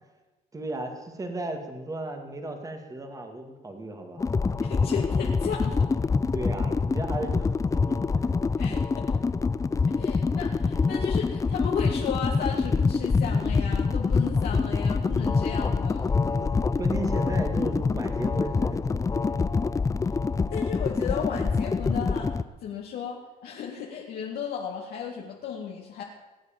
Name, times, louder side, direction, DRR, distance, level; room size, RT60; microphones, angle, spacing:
voice 1, 0.5-4.3 6.3-8.3 8.6-8.8 16.3-16.5 16.8-19.4, right 2 dB, 20° right, 5 dB, 2.2 m, -35 dB
sound 1, 4.2-22.4, left 4 dB, 20° left, 0.5 m, -25 dB
voice 2, 4.6-5.9 8.6-9.2 9.9-16.1 20.5-22.3 22.6-26.0, left 7 dB, 65° left, -2 dB, 2.0 m, -34 dB
19.0 x 8.4 x 7.3 m, 1.2 s
cardioid pair, 110°, 17 cm